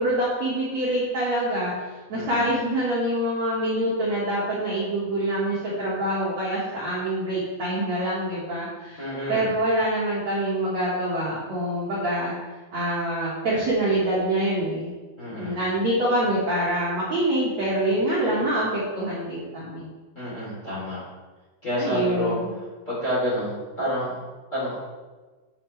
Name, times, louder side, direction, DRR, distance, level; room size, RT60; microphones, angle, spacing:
voice 1, 0.0-12.3 12.7-14.9 15.3-19.9 21.7-22.5, right 1 dB, 55° right, -7 dB, 2.1 m, -25 dB
voice 2, 2.1-2.5 9.0-9.5 15.2-15.6 20.1-21.0 21.6-22.4 22.9-24.2 24.5-24.7, equal, 20° left, -8 dB, 2.8 m, -29 dB
10.0 x 8.0 x 3.3 m, 1.3 s
omnidirectional pair, 5.5 m